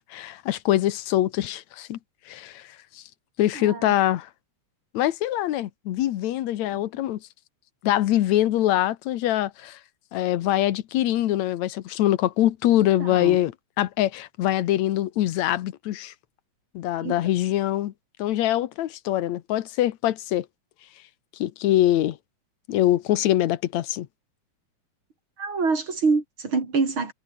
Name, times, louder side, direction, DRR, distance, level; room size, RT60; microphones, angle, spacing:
voice 1, 0.1-2.0 2.3-2.7 3.0-3.1 3.4-4.3 4.9-7.2 7.8-9.8 10.1-13.5 13.8-16.1 16.7-17.9 18.2-20.5 21.4-22.2 22.7-24.1, left 13 dB, 75° left, 2.3 m, -23 dB
voice 2, 3.5-3.9 6.7-6.8 13.0-13.4 17.0-17.2 25.4-27.1, right 4 dB, 40° right, 4.8 m, -26 dB
omnidirectional pair, 3.4 m